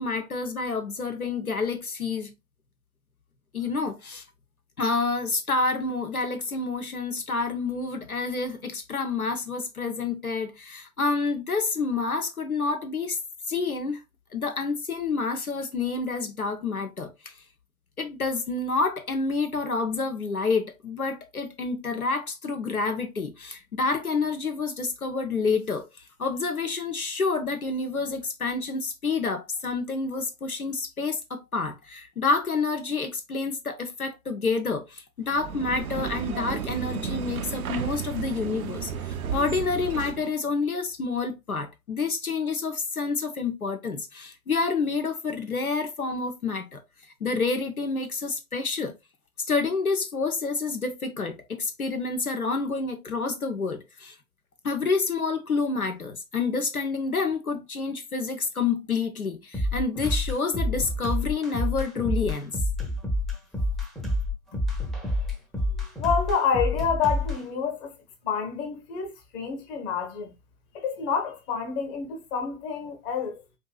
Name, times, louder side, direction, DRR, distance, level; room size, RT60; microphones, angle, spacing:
voice 1, 0.0-2.3 3.5-4.2 4.8-13.2 13.5-14.0 14.3-17.1 18.0-25.9 26.2-46.8 47.2-48.9 49.4-54.1 54.6-62.6, left 4 dB, 90° left, 0.7 m, -28 dB
sound 1, 35.3-40.3, right 7 dB, 80° right, 0.5 m, -33 dB
sound 2, 59.5-67.4, left 1 dB, ahead, 0.6 m, -28 dB
voice 2, 66.0-67.9 68.2-70.3 70.7-73.4, left 6 dB, 30° left, 1.0 m, -28 dB
4.5 x 2.6 x 2.3 m
figure-of-eight pair, 90°, 42 cm